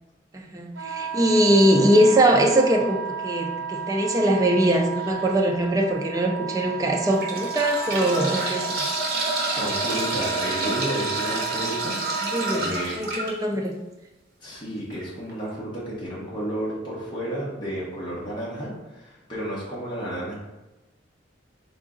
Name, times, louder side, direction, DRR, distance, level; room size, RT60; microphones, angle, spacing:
voice 1, 0.3-8.8 12.3-13.7, right 1 dB, 20° right, 2 dB, 0.4 m, -21 dB
Wind instrument woodwind instrument, 0.8-12.5, right 7 dB, 85° right, 0.8 m, -33 dB
sound 1, 5.0-5.2 5.9-6.0 6.9-13.3 14.9-15.0 15.3-15.4, right 2 dB, 55° right, 1.0 m, -29 dB
voice 2, 9.4-12.0 12.5-12.9 14.4-20.3, right 1 dB, 25° left, -7 dB, 1.1 m, -32 dB
3.8 x 3.6 x 3.7 m, 1.1 s
head